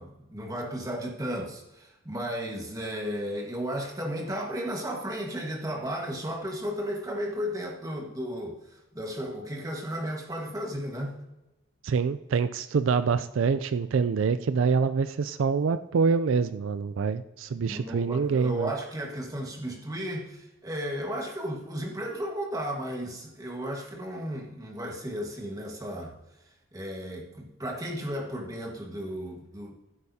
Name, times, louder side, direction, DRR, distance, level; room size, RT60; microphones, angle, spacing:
voice 1, 0.0-11.2 17.5-26.1 26.7-29.8, equal, 20° right, 0 dB, 1.5 m, -34 dB
voice 2, 11.8-18.7, right 5 dB, 75° right, 12 dB, 0.4 m, -26 dB
15.0 x 8.2 x 2.8 m, 0.98 s
head